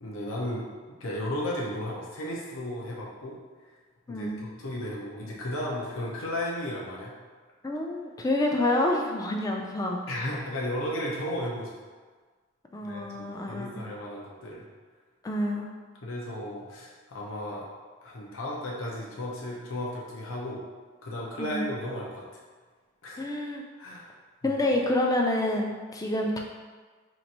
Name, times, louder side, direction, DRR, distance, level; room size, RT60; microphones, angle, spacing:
voice 1, 0.0-0.7 1.0-3.4 4.1-7.1 10.1-11.7 12.8-14.6 16.0-17.7 18.0-20.6 21.0-22.3 23.0-23.2 23.8-24.1 24.4-24.6, left 1 dB, 90° left, -4 dB, 0.7 m, -34 dB
voice 2, 4.1-4.4 7.6-10.0 12.7-13.8 15.2-15.7 21.4-21.7 23.2-23.6 24.4-26.4, left 1 dB, 20° left, 1 dB, 0.3 m, -28 dB
3.0 x 2.5 x 4.1 m, 1.4 s
head